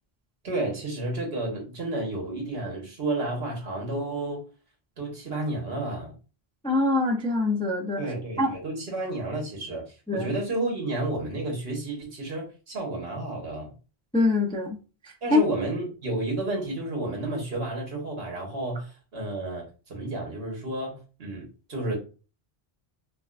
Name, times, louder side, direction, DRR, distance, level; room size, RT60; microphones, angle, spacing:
voice 1, 0.4-4.4 5.0-6.1 8.0-13.7 15.2-22.0, right 2 dB, 75° right, 0 dB, 1.6 m, -31 dB
voice 2, 6.6-8.0 8.4-8.5 10.1-10.3 14.1-14.8 15.0-15.4, left 3 dB, 5° left, 0 dB, 0.5 m, -24 dB
5.1 x 2.2 x 2.4 m, 0.34 s
omnidirectional pair, 1.0 m